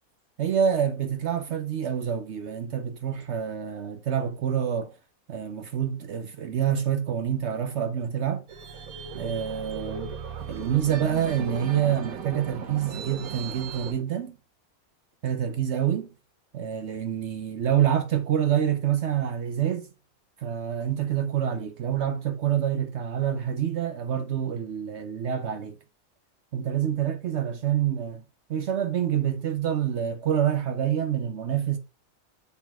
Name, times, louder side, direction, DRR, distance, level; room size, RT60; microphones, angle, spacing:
voice 1, 0.4-4.9 5.3-8.4 9.1-10.2 10.5-14.4 15.2-16.1 16.5-19.9 20.4-25.8 26.5-28.2 28.5-31.8, right 9 dB, 60° right, 0.8 m, -27 dB
sound 1, 8.5-13.9, right 6 dB, 80° right, 1.4 m, -37 dB
7.1 x 4.0 x 4.5 m
omnidirectional pair, 1.5 m